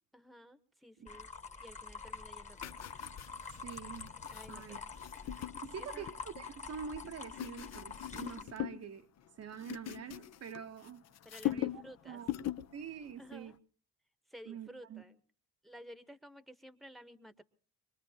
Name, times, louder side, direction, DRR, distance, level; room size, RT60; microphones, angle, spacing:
voice 1, 0.1-1.3 1.6-2.9 4.3-4.9 5.8-6.1 11.2-12.2 13.2-13.5 14.3-15.2 15.6-17.4, equal, ahead, 1.1 m, -53 dB
sound 1, 1.1-8.4, left 5 dB, 25° left, 1.4 m, -46 dB
sound 2, 2.6-6.5 7.0-8.9 9.2-10.9 11.2-11.9 12.2-12.7 13.1-13.3, left 13 dB, 60° left, 0.7 m, -41 dB
voice 2, 3.6-4.1 4.5-4.8 5.6-9.1 9.4-11.0 11.5-12.3 12.7-13.6 14.5-15.0, right 7 dB, 55° right, 0.9 m, -46 dB
25.0 x 20.5 x 2.8 m
cardioid pair, 90°, 30 cm